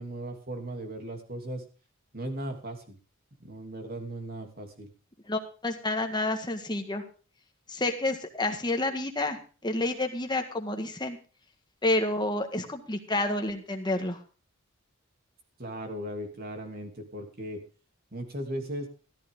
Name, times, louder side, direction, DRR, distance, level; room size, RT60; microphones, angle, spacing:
voice 1, 0.0-1.6 2.1-3.0 3.4-4.9 15.6-17.6 18.1-18.9, right 1 dB, 45° right, 4 dB, 3.0 m, -37 dB
voice 2, 5.3-7.0 7.7-11.2 11.8-14.2, left 2 dB, 20° left, 5 dB, 1.7 m, -29 dB
14.0 x 13.5 x 3.8 m, 0.37 s
head